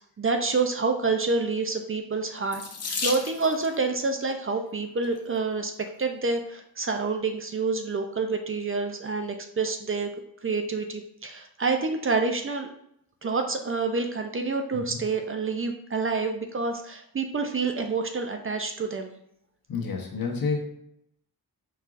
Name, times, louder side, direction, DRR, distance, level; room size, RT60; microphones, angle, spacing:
voice 1, 0.2-2.6 3.0-5.7 6.0-10.1 10.4-12.7 13.2-19.1, right 4 dB, 35° right, 5 dB, 0.4 m, -28 dB
Water tap faucet / Sink (filling or washing), 2.5-3.8 4.8-5.2 5.9-6.0 6.3-6.4, left 4 dB, 40° left, 0.6 m, -33 dB
voice 2, 19.7-20.6, left 4 dB, 65° left, 1 dB, 1.0 m, -29 dB
4.7 x 4.5 x 2.5 m, 0.75 s
wide cardioid pair, 140°, 38 cm